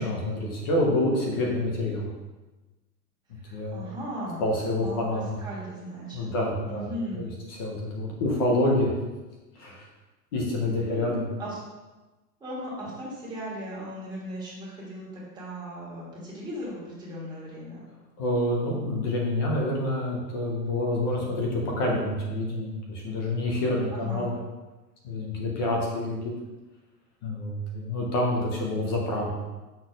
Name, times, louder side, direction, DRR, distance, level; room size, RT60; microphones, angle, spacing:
voice 1, 0.0-2.1 3.5-3.8 4.4-5.4 6.1-8.9 9.6-9.8 10.3-11.2 18.2-24.4 25.0-26.3 27.2-29.3, left 1 dB, 15° left, -1 dB, 0.4 m, -27 dB
voice 2, 3.3-4.5 4.8-6.3 6.6-7.2 10.8-11.6 12.4-17.8 23.9-24.3, equal, 10° right, -7 dB, 1.7 m, -37 dB
6.4 x 4.1 x 5.0 m, 1.2 s
supercardioid pair, 160°, 49 cm